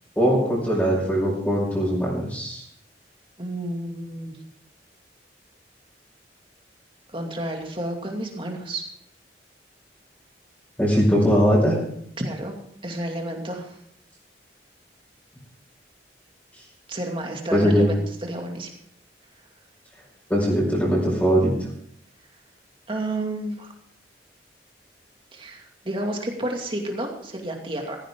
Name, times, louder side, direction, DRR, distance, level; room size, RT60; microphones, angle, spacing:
voice 1, 0.2-2.6 10.8-11.7 17.5-17.9 20.3-21.5, equal, 10° left, -5 dB, 5.2 m, -20 dB
voice 2, 3.4-4.4 7.1-8.8 12.2-12.6 12.8-13.7 16.9-17.9 18.2-18.7 22.9-23.7 25.3-28.0, right 1 dB, 30° right, 2 dB, 2.4 m, -30 dB
16.0 x 15.0 x 3.8 m, 0.69 s
head